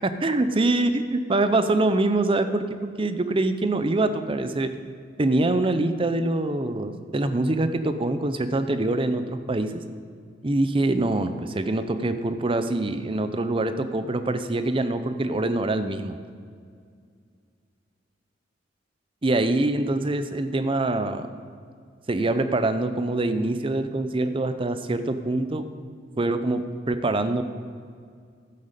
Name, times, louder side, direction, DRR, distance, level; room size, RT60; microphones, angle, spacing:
voice 1, 0.0-4.7 5.2-9.8 10.4-16.2 19.2-21.3 22.1-25.7 26.2-27.4, right 2 dB, 30° right, 10 dB, 0.6 m, -24 dB
12.5 x 8.3 x 5.1 m, 2.2 s
head